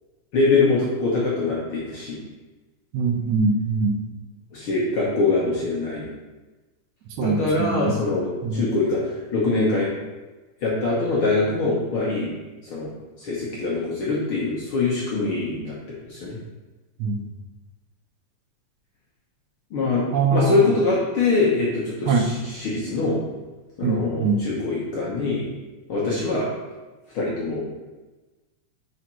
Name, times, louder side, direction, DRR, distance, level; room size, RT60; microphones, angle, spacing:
voice 1, 0.3-2.2 4.5-6.1 7.2-9.9 10.6-12.3 12.6-12.9 13.2-15.8 16.1-16.4 19.7-23.2 23.8-25.5 25.9-26.5 27.1-27.6, left 3 dB, 60° left, -6 dB, 1.5 m, -23 dB
voice 2, 2.9-4.0 7.2-8.0 8.4-8.7 17.0-17.2 20.1-20.6 22.1-22.3 23.8-24.5, right 4 dB, 80° right, 3 dB, 2.1 m, -23 dB
5.0 x 4.9 x 4.3 m, 1.2 s
omnidirectional pair, 3.5 m